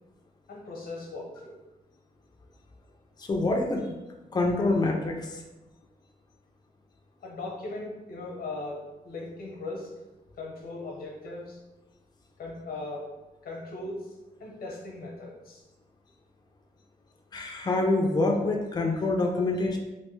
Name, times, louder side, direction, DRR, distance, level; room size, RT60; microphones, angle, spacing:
voice 1, 0.5-1.6 7.2-9.9 10.3-11.6 12.4-13.1 13.4-15.7, left 2 dB, 90° left, -1 dB, 0.9 m, -38 dB
voice 2, 3.2-3.8 4.3-5.4 17.3-19.8, left 2 dB, 25° left, 1 dB, 0.4 m, -26 dB
3.1 x 2.6 x 3.1 m, 1.0 s
cardioid pair, 95°, 15 cm